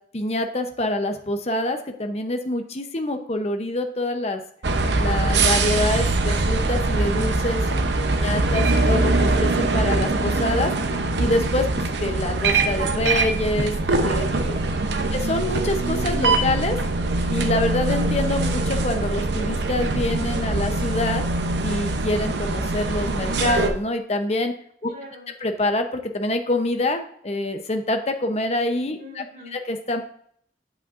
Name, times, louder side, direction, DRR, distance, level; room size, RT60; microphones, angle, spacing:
voice 1, 0.1-4.4 5.0-7.6 8.2-10.7 11.2-14.5 15.1-16.8 17.3-21.2 21.6-24.5 24.8-24.9 25.4-29.2 29.5-30.0, left 1 dB, 35° left, 6 dB, 0.8 m, -26 dB
sound 1, 4.6-23.7, right 2 dB, 80° right, 0.8 m, -23 dB
voice 2, 14.5-15.1 24.8-25.3 28.9-29.6, left 1 dB, 50° right, -2 dB, 3.4 m, -43 dB
8.1 x 8.0 x 2.6 m, 0.64 s
head